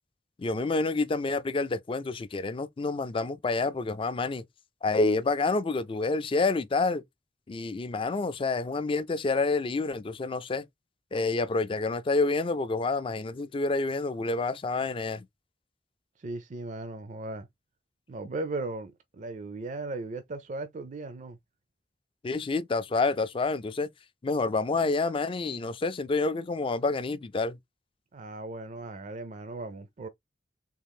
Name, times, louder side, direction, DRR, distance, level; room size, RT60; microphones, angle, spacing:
voice 1, 0.4-4.4 4.8-7.0 7.5-10.6 11.1-15.2 22.2-23.9 24.2-27.6, left 3 dB, 30° left, 0.4 m, -28 dB
voice 2, 16.2-17.5 18.1-21.4 28.1-30.1, right 2 dB, 45° right, 0.5 m, -37 dB
3.6 x 2.5 x 3.5 m
head